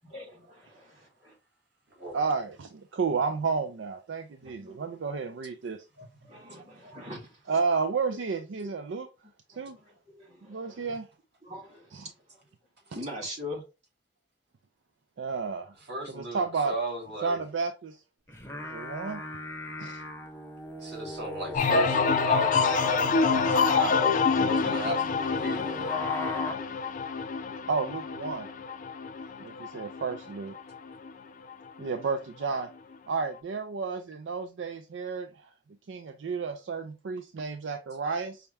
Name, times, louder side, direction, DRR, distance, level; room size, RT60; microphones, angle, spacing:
voice 1, 0.0-1.3 4.4-4.9 6.0-7.6 8.1-8.2 8.6-8.7 9.5-11.0 11.4-12.1 12.9-13.6, left 1 dB, 40° right, 2.6 m, -43 dB
voice 2, 2.1-5.8 7.5-9.1 9.6-9.8 10.5-11.1 11.9-12.1 15.2-15.7 16.1-16.7 17.2-18.0 18.6-19.2 19.8-20.0 27.7-28.5 29.4-30.6 31.8-32.7 33.1-35.3 35.9-38.4, right 4 dB, 85° right, 0.4 m, -31 dB
voice 3, 15.9-17.4 20.8-24.0 24.4-25.9, right 1 dB, 65° right, 2.5 m, -35 dB
sound 1, 18.3-26.5, left 3 dB, 15° left, 0.7 m, -36 dB
sound 2, 21.5-31.1 31.5-32.0, left 5 dB, 45° left, 0.4 m, -27 dB
5.6 x 2.1 x 3.4 m
head